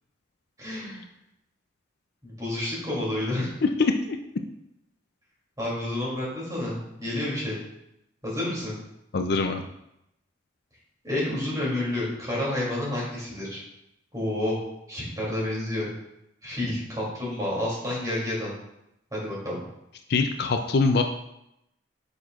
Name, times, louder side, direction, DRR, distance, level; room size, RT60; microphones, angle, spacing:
voice 1, 0.6-1.0 2.2-3.5 5.6-7.6 8.2-8.7 11.0-13.6 14.1-14.6 14.9-15.9 16.4-18.5 19.1-19.5, left 1 dB, 20° right, -5 dB, 2.8 m, -29 dB
voice 2, 3.6-4.2 9.1-9.6 20.1-21.0, left 4 dB, 55° left, 5 dB, 0.5 m, -23 dB
8.9 x 6.5 x 2.4 m, 0.83 s
head